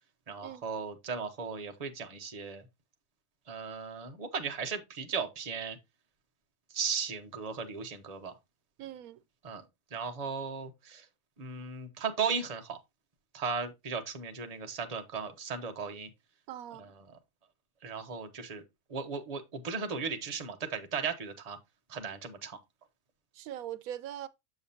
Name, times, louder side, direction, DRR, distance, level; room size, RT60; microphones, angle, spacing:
voice 1, 0.3-2.6 3.5-5.8 6.7-8.3 9.4-9.6 9.9-11.1 11.4-12.8 13.3-16.1 16.8-16.9 17.8-18.6 18.9-21.6 21.9-22.6, right 5 dB, 30° right, 0.9 m, -36 dB
voice 2, 8.8-9.2 16.5-16.9 23.3-24.3, right 11 dB, 85° right, 1.0 m, -41 dB
7.0 x 6.9 x 2.7 m
omnidirectional pair, 1.5 m